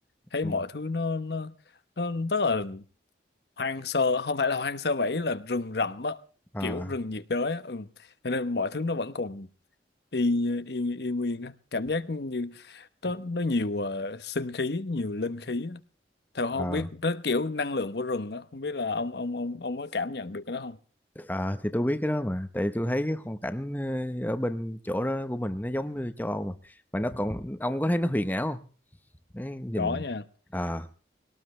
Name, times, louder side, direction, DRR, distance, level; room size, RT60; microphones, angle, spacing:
voice 1, 0.3-1.5 2.0-2.8 3.6-6.2 6.6-7.9 8.2-9.5 10.1-15.8 16.3-20.8 29.8-30.2, left 3 dB, 65° left, 1.0 m, -29 dB
voice 2, 6.5-6.9 16.6-16.9 21.2-28.6 29.3-30.0 30.5-30.9, equal, 10° left, 0.9 m, -30 dB
22.0 x 18.5 x 3.2 m
head